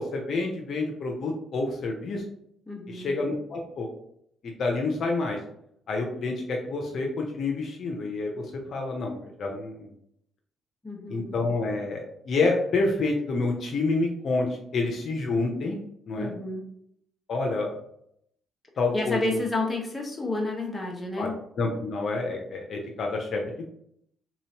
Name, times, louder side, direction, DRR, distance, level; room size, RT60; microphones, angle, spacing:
voice 1, 0.0-2.2 2.9-3.9 4.6-5.4 5.9-8.4 8.7-9.9 11.1-14.5 14.7-15.8 16.1-16.3 17.3-17.7 18.8-19.4 21.2-21.3 21.6-23.7, left 3 dB, 60° left, 1 dB, 0.7 m, -28 dB
voice 2, 2.7-3.1 10.8-11.3 16.2-16.7 18.9-21.4, left 2 dB, 15° left, 0 dB, 1.1 m, -30 dB
3.7 x 3.0 x 2.8 m, 0.72 s
cardioid pair, 90°, 0 cm